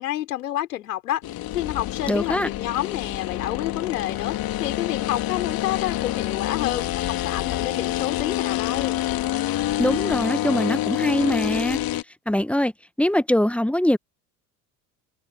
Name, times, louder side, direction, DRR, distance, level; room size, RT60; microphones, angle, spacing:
voice 1, 0.0-9.0, left 13 dB, 75° left, 6.0 m, -29 dB
sound 1, 1.2-12.0, left 14 dB, 45° left, 2.7 m, -27 dB
voice 2, 2.1-2.5 9.8-11.8 12.3-12.7 13.0-14.0, left 1 dB, 5° left, 1.2 m, -22 dB
figure-of-eight pair, 65°, 47 cm